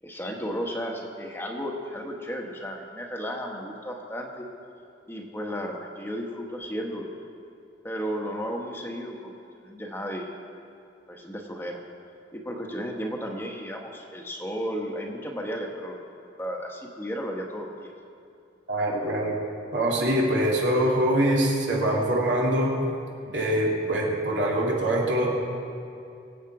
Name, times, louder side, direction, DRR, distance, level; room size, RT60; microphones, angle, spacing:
voice 1, 0.0-4.5 5.1-7.1 7.8-9.3 9.6-10.3 11.1-11.8 12.3-16.0 16.4-17.9, equal, 10° left, 1 dB, 1.2 m, -34 dB
voice 2, 18.7-19.4 19.7-22.7 23.3-25.3, right 1 dB, 80° right, -3 dB, 2.8 m, -24 dB
23.5 x 8.3 x 4.8 m, 2.6 s
head